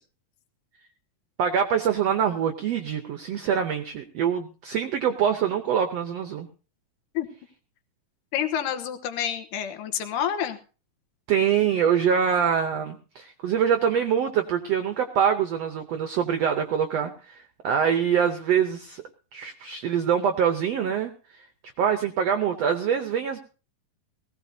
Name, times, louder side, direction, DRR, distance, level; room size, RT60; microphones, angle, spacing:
voice 1, 1.4-6.5 11.3-19.0 19.3-21.4 21.8-23.4, right 8 dB, 75° right, 7 dB, 1.5 m, -24 dB
voice 2, 8.3-10.6, left 9 dB, 75° left, 7 dB, 2.6 m, -28 dB
19.5 x 16.5 x 2.7 m, 0.36 s
omnidirectional pair, 3.9 m